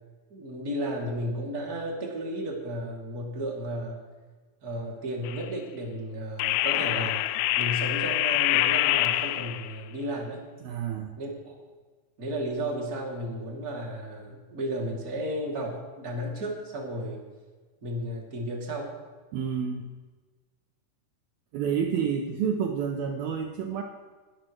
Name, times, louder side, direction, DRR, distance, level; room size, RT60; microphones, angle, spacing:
voice 1, 0.3-4.0 4.6-7.2 7.6-10.4 11.2-11.5 12.2-17.2 17.8-18.9, equal, 25° right, -1 dB, 2.6 m, -33 dB
sound 1, 5.2-5.5 6.4-9.8, left 16 dB, 90° left, 2.7 m, -25 dB
voice 2, 10.6-11.2 19.3-19.9 21.5-23.8, right 7 dB, 75° right, 3 dB, 2.5 m, -29 dB
22.0 x 12.0 x 3.2 m, 1.4 s
omnidirectional pair, 4.7 m